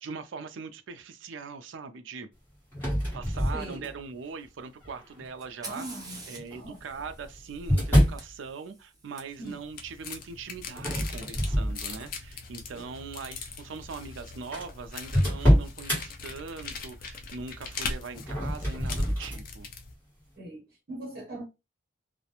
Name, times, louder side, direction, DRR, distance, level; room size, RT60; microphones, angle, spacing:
voice 1, 0.0-2.3 3.1-5.9 6.3-19.7, right 5 dB, 70° right, 0.4 m, -41 dB
sound 1, 2.7-4.2 4.8-5.3 6.4-8.3 10.8-12.3 12.8-13.0 13.8-13.9 14.1-14.2 14.5-16.0 18.1-19.4, equal, 10° left, 1.2 m, -26 dB
voice 2, 3.5-3.9 5.6-6.2 6.5-7.0 9.4-9.6 12.7-12.9 20.4-21.4, right 1 dB, 50° right, 0.9 m, -41 dB
Fire, 5.4-9.2 11.1-11.2 12.0-12.4, right 3 dB, 20° right, 0.5 m, -47 dB
sound 2, 9.2-19.9, left 4 dB, 45° left, 0.4 m, -41 dB
2.4 x 2.1 x 2.8 m
head